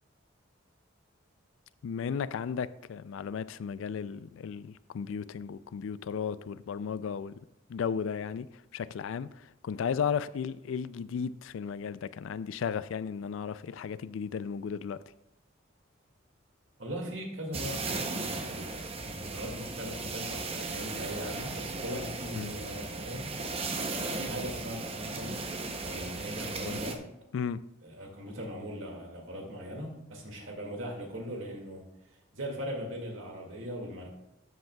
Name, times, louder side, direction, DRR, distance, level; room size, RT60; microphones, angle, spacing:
voice 1, 1.8-7.4 7.7-8.5 8.7-9.3 9.6-15.0 22.3-22.5 26.6-26.8 27.3-27.6, left 7 dB, 70° left, 0.3 m, -34 dB
voice 2, 16.8-17.8 18.1-23.3 24.1-25.4 25.8-27.0 27.8-31.8 32.3-34.1, equal, 70° right, 2.1 m, -40 dB
sound 1, 17.5-26.9, right 3 dB, 30° right, 0.7 m, -36 dB
13.0 x 7.8 x 2.3 m
head